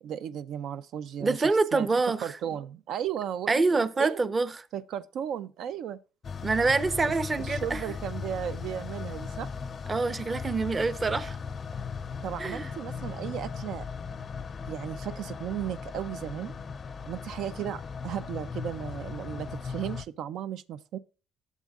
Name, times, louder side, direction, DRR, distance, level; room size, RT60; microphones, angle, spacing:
voice 1, 0.0-1.9 2.2-4.3 4.7-6.0 7.4-9.5 12.2-13.8 14.7-16.5 17.0-21.0, right 9 dB, 70° right, 0.4 m, -35 dB
voice 2, 1.2-2.2 3.5-4.7 6.4-7.8 9.9-11.4 12.4-12.7, right 3 dB, 25° right, 0.7 m, -26 dB
sound 1, 6.2-20.1, left 5 dB, 40° left, 0.4 m, -38 dB
11.5 x 7.3 x 2.3 m
cardioid pair, 105°, 0 cm